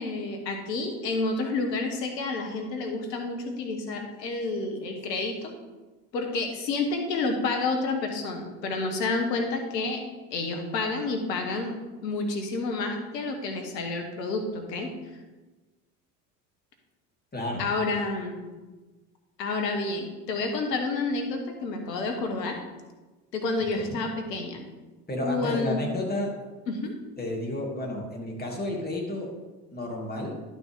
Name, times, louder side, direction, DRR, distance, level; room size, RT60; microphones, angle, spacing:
voice 1, 0.0-5.5 6.1-10.0 10.3-11.7 12.0-14.9 17.6-18.5 19.4-22.6 23.3-24.6 25.2-25.8 26.7-26.9, left 3 dB, 85° left, 4 dB, 1.5 m, -29 dB
voice 2, 17.3-17.7 23.7-24.0 25.1-26.3 27.2-29.3 29.7-30.4, left 1 dB, 20° left, -1 dB, 2.7 m, -31 dB
11.0 x 6.0 x 3.7 m, 1.2 s
hypercardioid pair, 65°, 48 cm